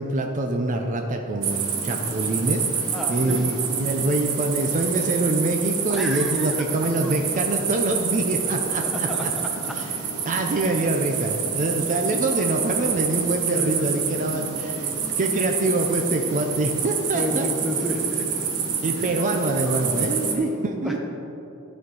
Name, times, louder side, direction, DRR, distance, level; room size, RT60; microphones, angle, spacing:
voice 1, 0.0-9.3 9.8-9.9 10.2-17.5 18.8-21.0, right 2 dB, 35° right, 3 dB, 0.5 m, -25 dB
sound 1, 1.4-20.3, right 6 dB, 85° right, 1.0 m, -27 dB
voice 2, 2.9-3.4 5.9-6.6 7.0-7.1 8.8-9.2 9.6-9.7 12.3-13.2 13.5-13.9 14.2-14.4 14.7-15.1 17.1-18.5 18.9-19.1 19.5-21.0, equal, ahead, 0 dB, 0.8 m, -33 dB
11.5 x 4.3 x 4.7 m, 2.8 s
head